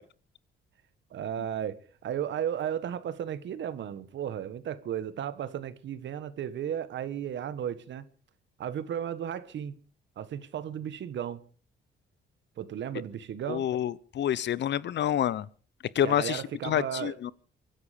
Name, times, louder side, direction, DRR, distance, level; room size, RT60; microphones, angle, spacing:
voice 1, 1.1-8.0 8.6-9.8 10.2-11.4 12.6-13.6 16.0-17.2, right 9 dB, 65° right, 1.5 m, -34 dB
voice 2, 13.5-15.5 15.9-17.3, left 10 dB, 65° left, 0.8 m, -28 dB
24.0 x 11.0 x 5.1 m
cardioid pair, 90°, 20 cm